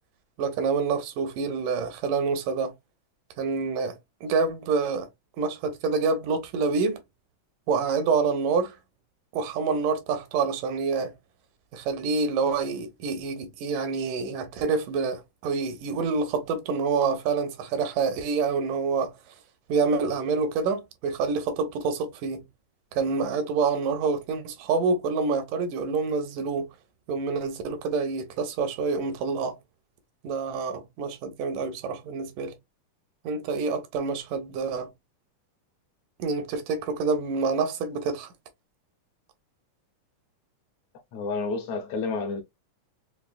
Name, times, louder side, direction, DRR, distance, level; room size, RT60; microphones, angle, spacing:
voice 1, 0.4-2.7 3.4-4.0 4.2-5.1 5.4-7.0 7.7-8.8 9.3-11.1 11.7-19.1 19.7-22.4 22.9-26.7 27.1-29.6 30.2-32.5 33.2-34.9 36.2-38.3, right 4 dB, 85° right, 2.4 m, -27 dB
voice 2, 41.1-42.4, left 4 dB, 70° left, 1.9 m, -30 dB
5.8 x 2.0 x 2.4 m
omnidirectional pair, 3.6 m